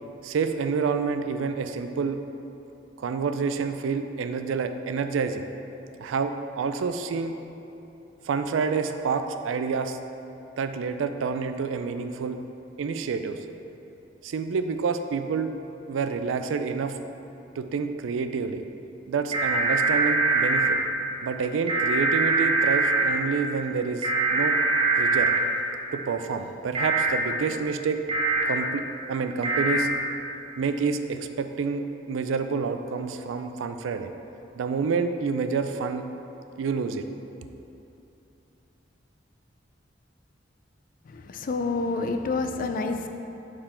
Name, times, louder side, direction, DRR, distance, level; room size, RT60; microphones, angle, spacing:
voice 1, 0.2-2.2 3.0-5.4 6.0-7.3 8.2-10.0 10.6-12.4 12.8-13.4 14.2-15.5 15.9-17.0 17.6-18.6 19.1-20.8 21.2-24.6 25.0-25.3 25.9-28.0 28.5-29.9 30.6-34.1 34.5-36.0 36.6-37.1, right 5 dB, 85° right, 8 dB, 0.4 m, -28 dB
sound 1, 19.3-20.7 21.7-23.0 24.0-25.4 26.7-27.1 28.1-28.4 29.4-29.8, right 3 dB, 30° right, 0.6 m, -23 dB
voice 2, 41.3-43.1, left 3 dB, 45° left, 6 dB, 0.4 m, -27 dB
6.7 x 3.7 x 4.3 m, 2.9 s
head